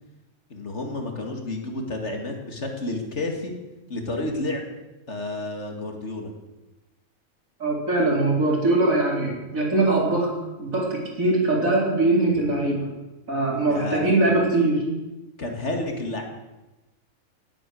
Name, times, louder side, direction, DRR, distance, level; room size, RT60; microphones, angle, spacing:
voice 1, 0.5-3.6 3.9-4.7 5.1-6.3 13.4-14.1 15.4-16.2, left 2 dB, 55° left, 3 dB, 2.5 m, -30 dB
voice 2, 7.6-10.3 10.6-12.8 13.3-14.8, right 2 dB, 70° right, -1 dB, 4.3 m, -22 dB
18.5 x 8.9 x 7.7 m, 1.1 s
omnidirectional pair, 1.5 m